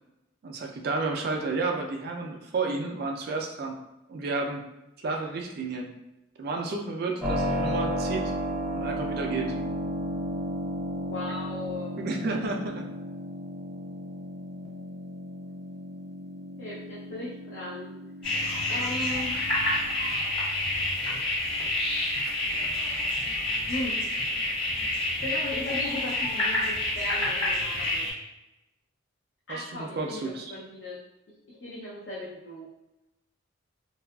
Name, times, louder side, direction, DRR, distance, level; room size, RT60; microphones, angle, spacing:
voice 1, 0.4-3.7 4.1-4.6 5.0-5.9 6.4-8.3 8.7-9.5 12.0-12.9 29.5-30.5, right 3 dB, 50° right, 2 dB, 0.3 m, -31 dB
Keyboard (musical), 7.2-19.9, equal, ahead, 0.6 m, -34 dB
voice 2, 11.0-12.0 16.6-17.9 18.3-18.4 18.7-19.4 22.8-23.0 23.7-24.0 24.9-28.1 29.5-31.0 31.5-32.7, left 2 dB, 55° left, -6 dB, 0.5 m, -37 dB
sound 1, 18.2-28.1, left 1 dB, 25° left, 1.0 m, -28 dB
2.7 x 2.3 x 2.2 m, 0.94 s
head